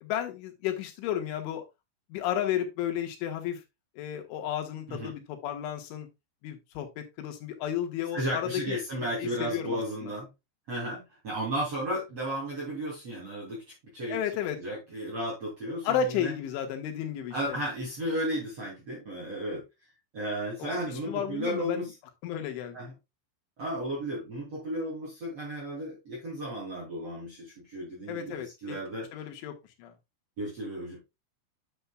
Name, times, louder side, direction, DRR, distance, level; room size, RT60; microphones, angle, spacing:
voice 1, 0.0-1.6 2.1-3.6 4.0-6.1 6.4-10.1 14.1-14.6 15.8-17.6 20.6-20.8 21.1-21.9 22.2-22.8 28.1-28.8 29.1-29.5 29.8-29.9, left 9 dB, 90° left, 3.8 m, -33 dB
voice 2, 8.1-10.3 10.7-14.2 14.6-16.3 17.3-19.6 20.1-21.9 22.7-22.9 23.6-29.1 30.4-31.0, equal, 40° right, 3.5 m, -34 dB
9.8 x 6.9 x 2.3 m
omnidirectional pair, 5.3 m